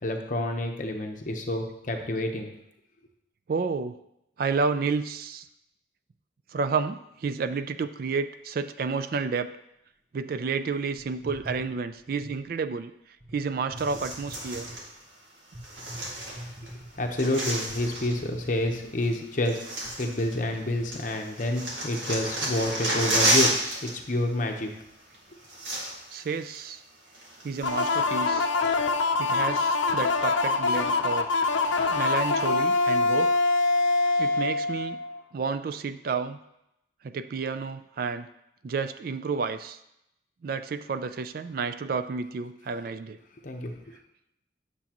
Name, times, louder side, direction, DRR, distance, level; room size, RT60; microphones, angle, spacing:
voice 1, 0.0-2.5 17.0-23.5 23.8-24.7 43.4-44.0, left 1 dB, 45° left, 3 dB, 0.9 m, -29 dB
voice 2, 3.5-4.0 4.4-5.5 6.5-9.5 10.1-12.9 13.3-14.7 26.1-26.8 27.4-28.5 29.2-31.3 31.9-33.3 34.2-35.0 35.3-36.4 37.0-38.3 38.6-39.8 40.4-43.2, right 5 dB, 50° right, 11 dB, 0.3 m, -30 dB
sound 1, 11.0-12.4 13.2-13.4 13.7-14.9 15.5-17.2 17.7-19.1 19.5-19.6 19.8-21.0, equal, 15° right, 1.1 m, -44 dB
sound 2, 13.8-14.8 15.6-16.7 16.9-18.2 19.0-19.1 19.4-20.6 20.9-23.9 24.2-24.4 25.1-25.2 25.4-26.2 26.5-26.6 27.1-28.1 28.6-28.7, right 1 dB, 80° right, 2.1 m, -30 dB
sound 3, 27.6-35.2, left 3 dB, 85° left, 0.5 m, -24 dB
9.5 x 6.9 x 3.0 m, 0.83 s
head